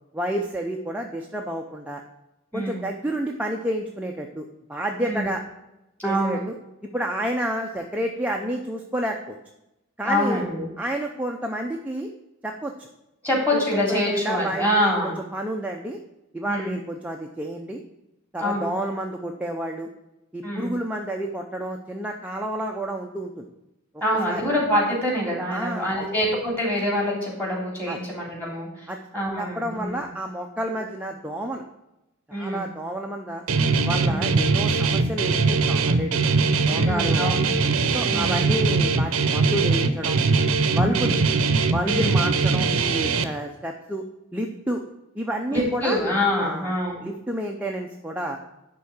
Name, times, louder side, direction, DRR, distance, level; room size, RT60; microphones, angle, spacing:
voice 1, 0.1-2.0 2.5-5.4 6.0-6.5 6.9-9.4 10.0-10.4 10.8-12.1 12.4-12.9 13.5-16.0 16.3-17.8 18.3-19.9 20.3-23.5 24.3-24.5 25.5-25.9 27.9-28.1 28.9-29.0 29.4-31.6 32.3-33.4 33.8-36.2 36.6-37.5 37.9-40.2 40.8-41.2 41.7-44.0 44.3-44.8 45.1-46.0 46.4-46.7 47.0-48.4, right 1 dB, 5° right, 1 dB, 0.6 m, -30 dB
voice 2, 2.5-2.8 5.0-5.2 6.0-6.4 10.0-10.7 13.2-15.1 16.4-16.8 18.4-18.7 20.4-20.7 24.0-28.9 29.1-30.0 32.3-32.6 34.1-34.4 36.7-37.5 38.1-38.5 40.7-41.2 41.8-42.2 45.5-47.1, equal, 10° left, -3 dB, 3.2 m, -25 dB
Guitar, 33.5-43.2, right 4 dB, 85° right, 0.7 m, -21 dB
11.0 x 3.8 x 7.1 m, 0.91 s
head